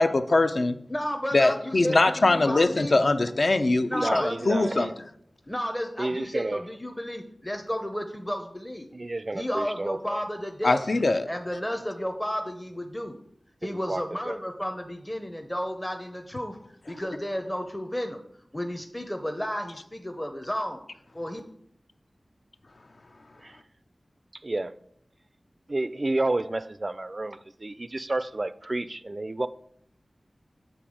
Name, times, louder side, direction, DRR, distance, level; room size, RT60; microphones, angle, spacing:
voice 1, 0.0-0.8 1.3-4.9 10.6-11.3, left 2 dB, 60° left, 0.5 m, -22 dB
voice 2, 0.9-3.0 3.9-4.5 5.5-8.9 9.3-10.8 11.3-13.2 13.6-16.6 16.9-18.2 18.5-20.8 21.1-21.4, equal, 15° left, 0.6 m, -32 dB
voice 3, 3.9-4.9 6.0-6.6 8.9-10.2 13.6-14.4 23.4-23.5 24.4-24.7 25.7-29.5, right 2 dB, 40° right, 0.3 m, -30 dB
7.8 x 3.5 x 6.3 m
wide cardioid pair, 75°, 0 cm